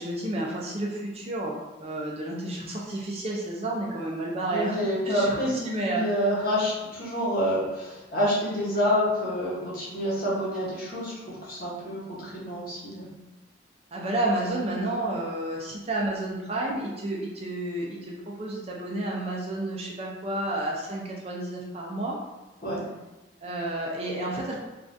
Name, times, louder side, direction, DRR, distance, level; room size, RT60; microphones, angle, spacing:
voice 1, 0.0-4.8 5.0-5.3 5.7-6.0 13.9-22.1 23.4-24.5, right 1 dB, 30° right, -3 dB, 0.4 m, -31 dB
voice 2, 4.5-13.1 22.6-22.8, equal, 50° left, -6 dB, 0.9 m, -28 dB
3.6 x 2.4 x 2.6 m, 1.1 s
head